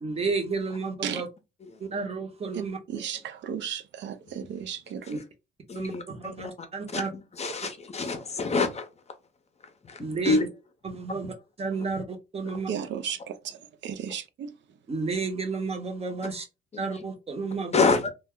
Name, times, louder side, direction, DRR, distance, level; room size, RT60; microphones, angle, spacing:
voice 1, 0.0-1.3 1.8-2.8 5.1-5.2 5.7-7.1 10.0-10.4 10.8-11.3 11.6-12.7 14.9-16.5 16.8-17.9, right 4 dB, 30° right, 0.8 m, -31 dB
voice 2, 2.9-5.2 12.7-13.6 13.8-14.5, right 8 dB, 65° right, 0.4 m, -34 dB
voice 3, 5.7-9.1 9.6-10.5 12.4-12.6 16.7-16.8 17.7-18.1, left 4 dB, 35° left, 0.6 m, -28 dB
2.2 x 2.0 x 3.5 m
cardioid pair, 90°, 20 cm